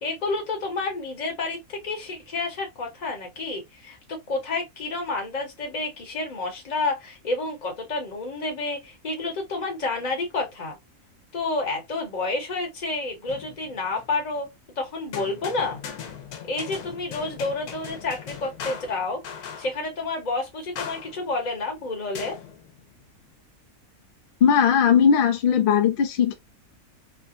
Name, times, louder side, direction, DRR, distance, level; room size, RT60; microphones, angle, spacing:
voice 1, 0.0-10.8 11.3-14.5 14.8-15.8 16.5-22.4, left 3 dB, 35° left, 1.0 m, -30 dB
sound 1, 13.3-14.2 15.1-19.9 20.8-21.4 22.1-23.0, left 7 dB, 85° left, 1.2 m, -39 dB
voice 2, 24.4-26.3, left 7 dB, 55° left, 0.6 m, -18 dB
3.3 x 2.2 x 2.4 m
omnidirectional pair, 1.6 m